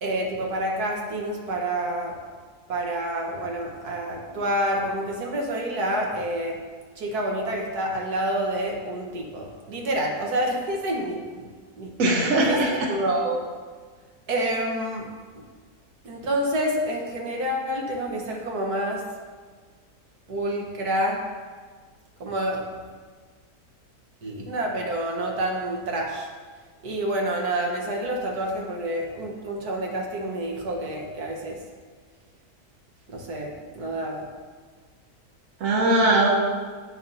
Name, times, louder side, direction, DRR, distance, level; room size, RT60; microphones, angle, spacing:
voice 1, 0.0-2.2 2.7-6.6 7.0-11.5 11.8-11.9 12.5-13.5 14.3-15.1 15.3-15.4 16.0-19.0 20.3-21.2 22.2-22.6 24.2-26.3 26.8-31.6 33.1-34.3, right 1 dB, 85° right, 0 dB, 1.8 m, -28 dB
voice 2, 12.0-12.9 35.6-36.3, right 1 dB, 60° right, -1 dB, 1.5 m, -20 dB
11.0 x 8.8 x 2.8 m, 1.6 s
omnidirectional pair, 1.6 m